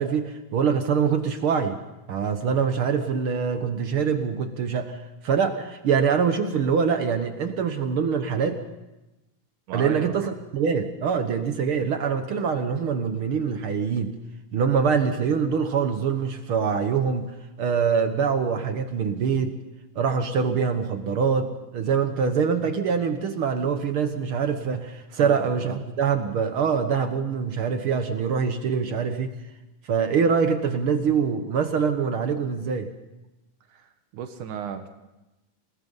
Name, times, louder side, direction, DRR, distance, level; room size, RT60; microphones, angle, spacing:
voice 1, 0.0-1.8 2.1-8.6 9.7-14.1 14.5-19.6 19.9-29.4 29.8-32.9, right 6 dB, 60° right, 8 dB, 1.5 m, -24 dB
voice 2, 9.7-10.3 25.1-25.8 33.7-34.9, right 8 dB, 75° right, 7 dB, 2.6 m, -36 dB
28.0 x 18.5 x 5.5 m, 1.0 s
omnidirectional pair, 3.7 m